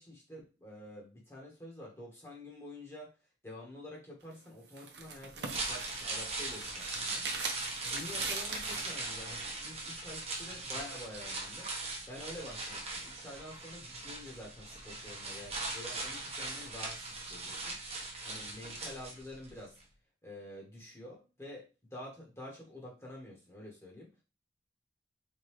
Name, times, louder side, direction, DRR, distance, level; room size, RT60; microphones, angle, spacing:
voice 1, 0.0-3.1 3.4-7.3 7.8-11.7 12.1-17.8 18.2-19.8 20.2-24.1, left 1 dB, 15° left, -3 dB, 1.2 m, -48 dB
sound 1, 4.2-9.0, right 4 dB, 70° right, 0.8 m, -42 dB
sound 2, 5.3-19.5 19.8-19.9, right 2 dB, 35° right, 1.0 m, -40 dB
3.7 x 3.5 x 3.1 m, 0.30 s
head